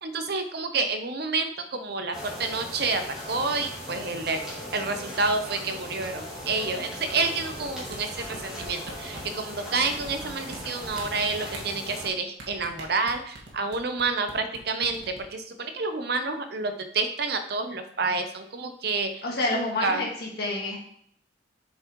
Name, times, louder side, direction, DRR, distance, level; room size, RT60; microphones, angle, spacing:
voice 1, 0.0-4.4 4.7-15.0 15.3-19.2 19.5-20.0, right 3 dB, 55° right, 7 dB, 0.8 m, -29 dB
sound 1, 2.1-12.1, equal, 5° right, 2.5 m, -39 dB
sound 2, 7.5-9.3 9.9-10.6 10.8-11.6 12.4-14.0 14.3-14.6 14.8-15.2, right 2 dB, 75° right, 1.9 m, -41 dB
voice 2, 19.2-20.8, left 2 dB, 55° left, -2 dB, 2.0 m, -28 dB
7.5 x 5.6 x 3.1 m, 0.67 s
head